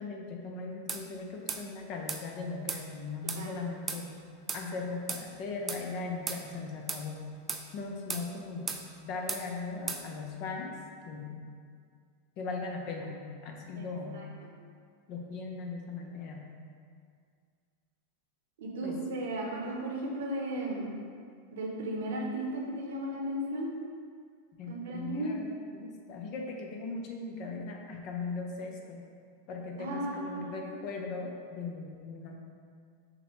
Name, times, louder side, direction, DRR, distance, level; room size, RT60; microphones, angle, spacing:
voice 1, 0.0-4.2 4.5-7.2 7.7-8.8 9.0-10.7 11.0-11.4 12.4-14.2 15.1-16.5 18.8-19.0 24.6-25.5 25.7-29.0 29.5-32.3, left 4 dB, 50° left, 1 dB, 0.6 m, -39 dB
sound 1, 0.9-1.0 1.5-1.6 2.1-2.2 2.7-2.8 3.3-3.4 3.9-4.0 4.5-4.6 5.1-5.2 5.7-5.8 6.3-6.4 6.9-7.0 7.5-7.6 8.1-8.3 8.7-8.8 9.3-9.4 9.9-10.0, right 5 dB, 20° right, 0.3 m, -35 dB
voice 2, 18.6-20.9 21.5-23.7 24.7-25.3 29.8-30.6, right 1 dB, 75° right, -1 dB, 0.8 m, -35 dB
6.3 x 2.2 x 3.1 m, 2.2 s
hypercardioid pair, 110°, 0 cm